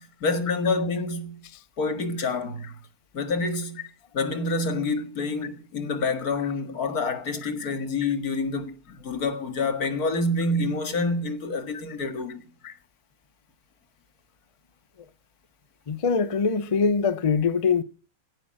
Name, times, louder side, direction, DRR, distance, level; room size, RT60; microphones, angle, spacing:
voice 1, 0.0-1.4 1.8-2.7 3.1-3.8 4.1-12.4, left 3 dB, 70° left, 2.3 m, -27 dB
voice 2, 15.9-17.8, left 5 dB, 35° left, 0.5 m, -23 dB
16.0 x 9.1 x 6.4 m
omnidirectional pair, 1.6 m